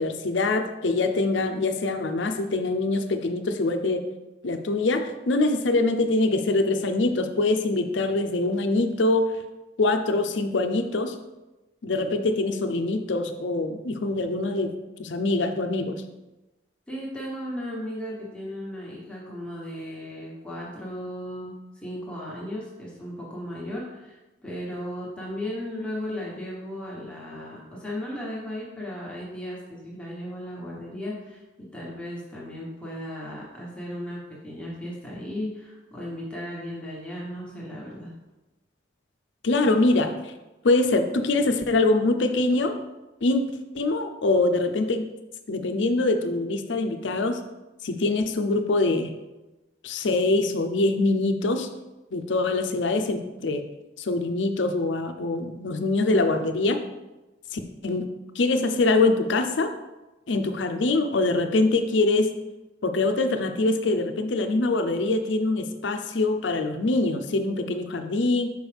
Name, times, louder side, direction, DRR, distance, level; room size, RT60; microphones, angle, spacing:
voice 1, 0.0-4.0 4.4-9.3 9.8-11.1 11.8-14.7 15.0-16.0 39.4-40.1 40.6-42.8 43.2-43.4 43.7-45.1 45.5-47.4 47.8-49.1 49.8-51.7 52.1-53.6 54.0-56.8 57.5-58.1 58.4-59.7 60.3-62.3 62.8-68.5, left 2 dB, 85° left, 7 dB, 0.6 m, -24 dB
voice 2, 16.9-38.1, left 1 dB, 5° left, -6 dB, 1.2 m, -36 dB
6.3 x 4.7 x 3.4 m, 1.1 s
head